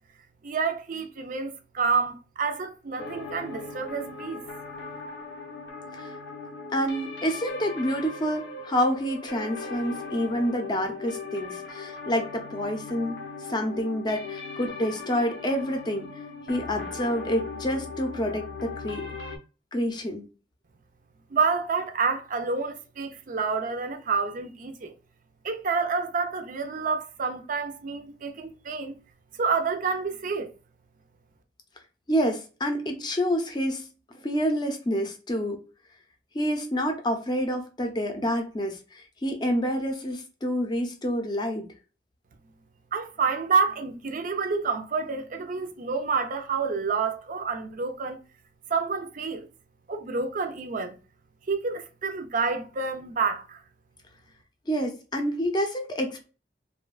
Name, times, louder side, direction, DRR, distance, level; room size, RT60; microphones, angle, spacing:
voice 1, 0.4-4.5 21.3-24.9 25.4-29.0 29.4-30.5 42.9-48.2 48.7-49.5 49.9-51.0 51.5-53.6, right 5 dB, 50° right, 0.5 m, -28 dB
sound 1, 3.0-19.4, left 4 dB, 85° left, 0.6 m, -38 dB
voice 2, 6.7-13.2 13.5-16.1 16.5-19.1 19.7-20.3 32.1-33.9 34.1-35.6 36.3-41.7 54.7-56.2, equal, 25° left, 0.5 m, -28 dB
2.9 x 2.2 x 2.3 m
head